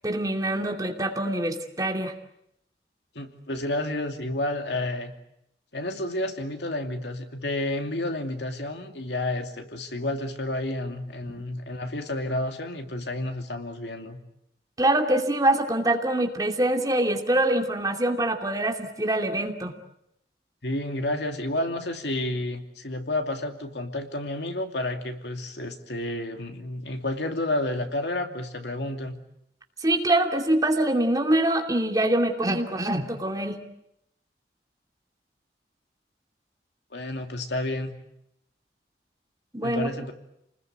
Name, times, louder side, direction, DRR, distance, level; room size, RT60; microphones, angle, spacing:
voice 1, 0.0-2.1 14.8-19.7 29.8-33.6 39.5-39.9, right 1 dB, 20° right, 3 dB, 2.7 m, -24 dB
voice 2, 3.1-5.1 5.7-14.2 20.6-29.2 36.9-38.0 39.6-40.1, left 1 dB, 80° left, 5 dB, 2.7 m, -30 dB
29.5 x 20.5 x 9.3 m, 0.80 s
head